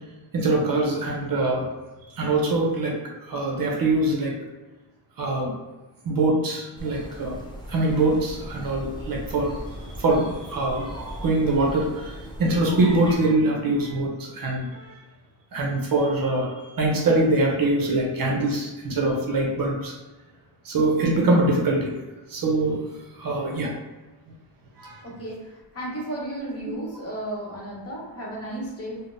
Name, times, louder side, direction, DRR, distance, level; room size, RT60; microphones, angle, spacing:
voice 1, 0.3-1.7 2.1-3.0 3.2-4.4 5.2-5.5 6.0-9.6 10.0-14.9 15.5-19.9 20.6-21.9 22.3-22.8 23.1-23.7 24.8-25.0, right 2 dB, 50° right, -1 dB, 0.6 m, -23 dB
sound 1, 6.8-13.2, equal, 10° left, 0.3 m, -38 dB
voice 2, 25.0-29.0, right 1 dB, 30° left, -4 dB, 0.9 m, -34 dB
3.5 x 2.1 x 2.5 m, 1.2 s
cardioid pair, 135°, 45 cm